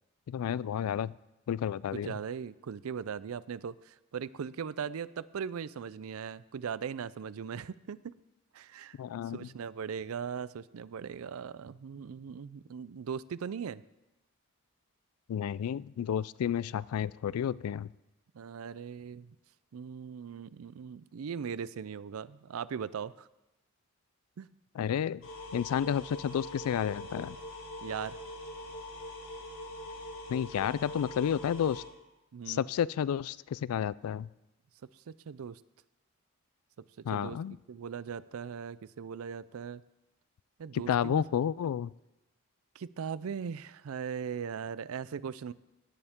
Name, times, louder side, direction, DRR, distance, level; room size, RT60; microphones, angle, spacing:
voice 1, 0.3-1.1 1.5-2.1 9.0-9.5 15.3-17.9 24.8-25.2 25.5-27.4 30.3-31.8 32.5-34.3 37.0-37.6 40.7-41.9, left 9 dB, 90° left, 21 dB, 0.3 m, -31 dB
voice 2, 1.9-8.1 8.5-9.0 9.3-13.8 18.3-19.4 19.7-23.3 24.4-24.5 27.8-28.2 32.3-32.7 35.1-35.6 37.0-37.4 37.7-39.8 40.6-41.2 42.8-45.5, right 7 dB, 75° right, 18 dB, 0.4 m, -39 dB
sound 1, 25.2-31.8, left 1 dB, 65° left, 4.0 m, -43 dB
17.0 x 9.7 x 3.6 m, 0.97 s
head